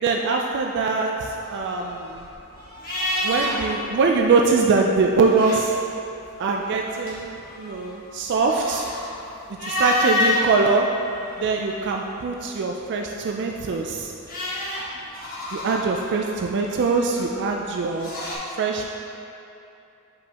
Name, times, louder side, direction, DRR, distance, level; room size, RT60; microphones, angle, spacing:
voice 1, 0.0-2.3 3.2-5.7 6.4-8.9 9.6-10.9 11.4-14.1 15.5-18.1 18.6-18.9, right 4 dB, 50° right, 1 dB, 0.3 m, -23 dB
sound 1, 1.5-3.8 4.1-4.3 5.1-6.0 6.5-10.5 11.0-12.0 13.5-18.4, left 2 dB, 40° left, 1.5 m, -29 dB
7.2 x 5.2 x 2.9 m, 2.8 s
head